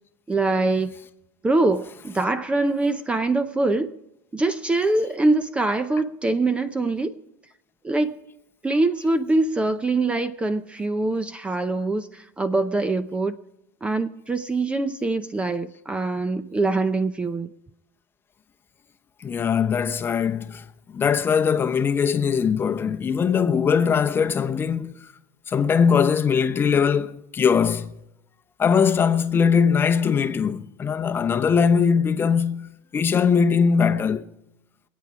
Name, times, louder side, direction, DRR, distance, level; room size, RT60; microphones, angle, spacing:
voice 1, 0.3-0.9 1.4-3.9 4.3-7.2 7.8-8.2 8.6-13.4 13.8-17.5, right 2 dB, 10° right, 0.6 m, -23 dB
voice 2, 19.2-20.6 20.9-25.1 25.5-27.9 28.6-34.2, left 6 dB, 25° left, 0.9 m, -21 dB
25.0 x 8.7 x 4.8 m
supercardioid pair, 115°, 9 cm